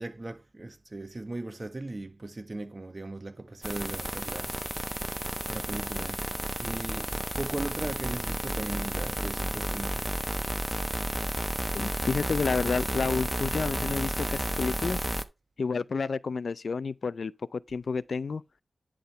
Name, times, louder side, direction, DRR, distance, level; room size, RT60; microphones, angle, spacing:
voice 1, 0.0-4.9 5.5-6.3 6.6-10.1, right 2 dB, 35° right, 1.4 m, -38 dB
sound 1, 3.6-15.2, right 1 dB, 5° right, 0.9 m, -32 dB
voice 2, 11.7-15.0 15.6-18.4, left 4 dB, 70° left, 0.4 m, -30 dB
10.5 x 3.6 x 4.1 m
wide cardioid pair, 75°, 0 cm